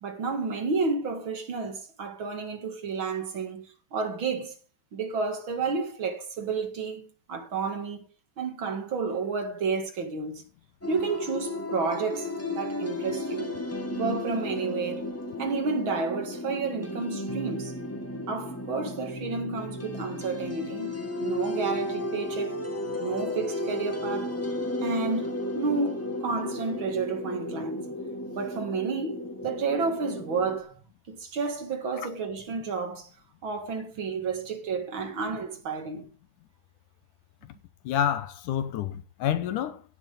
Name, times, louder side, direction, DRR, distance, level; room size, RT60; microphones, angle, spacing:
voice 1, 0.0-4.5 4.9-8.1 8.4-10.4 10.9-13.6 13.9-15.1 15.4-17.7 18.3-22.6 23.0-24.4 24.8-27.9 28.3-30.8 31.1-33.1 33.4-36.1, right 4 dB, 45° right, 2.0 m, -31 dB
sound 1, 10.8-30.6, left 1 dB, 10° left, 0.7 m, -34 dB
voice 2, 37.8-39.8, left 10 dB, 70° left, 2.2 m, -28 dB
17.0 x 7.5 x 3.8 m
omnidirectional pair, 4.2 m